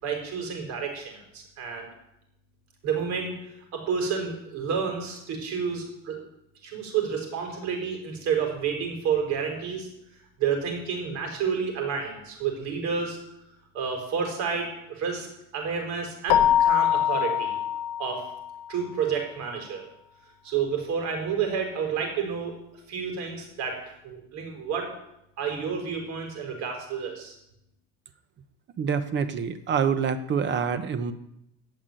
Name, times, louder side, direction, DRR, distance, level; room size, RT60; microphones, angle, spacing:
voice 1, 0.0-1.9 2.8-3.3 3.7-6.2 6.6-9.9 10.4-13.2 13.7-15.3 15.5-17.6 18.0-18.2 18.7-19.8 20.4-22.6 22.9-23.8 24.0-24.9 25.4-27.3, right 6 dB, 60° right, 2 dB, 4.6 m, -30 dB
Keyboard (musical), 16.3-18.7, left 10 dB, 75° left, 0.8 m, -23 dB
voice 2, 28.8-31.1, right 6 dB, 35° right, 11 dB, 1.0 m, -26 dB
15.5 x 6.0 x 9.1 m, 0.83 s
cardioid pair, 150°, 31 cm